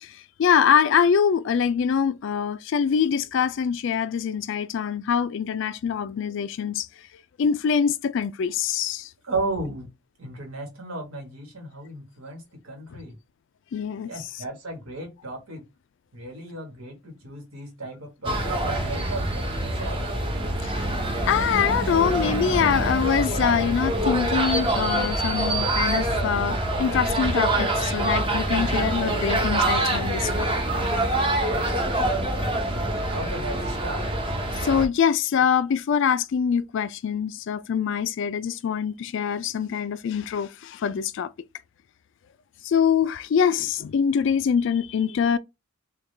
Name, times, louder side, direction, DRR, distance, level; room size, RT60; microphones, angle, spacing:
voice 1, 0.0-6.9 7.4-9.1 12.9-13.0 13.7-14.1 20.6-21.0 21.3-30.5 34.5-41.3 42.6-45.4, left 7 dB, 60° left, 0.3 m, -24 dB
voice 2, 9.2-9.9 10.2-13.2 14.1-15.6 16.1-20.1 31.5-34.1, right 2 dB, 90° right, 1.4 m, -35 dB
sound 1, 18.2-34.9, right 1 dB, 25° right, 0.6 m, -25 dB
3.6 x 2.3 x 3.2 m
head